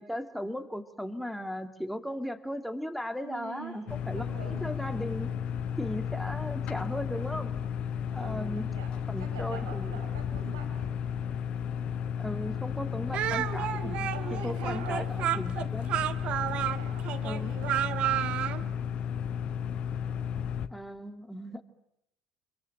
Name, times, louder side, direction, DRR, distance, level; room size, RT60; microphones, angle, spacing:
voice 1, 0.0-5.3 5.8-7.5 8.1-8.7 9.1-10.0 12.2-16.1 17.2-17.6 20.7-21.6, equal, ahead, 7 dB, 2.6 m, -37 dB
voice 2, 3.2-4.6 8.2-8.9 9.2-11.0 14.1-15.3 16.5-18.7, right 5 dB, 85° right, 4 dB, 5.9 m, -46 dB
sound 1, 3.9-20.7, left 8 dB, 55° left, 1.2 m, -33 dB
Speech, 13.1-18.6, right 12 dB, 60° right, 1.5 m, -31 dB
28.5 x 22.5 x 9.1 m, 0.83 s
hypercardioid pair, 65°, 2 cm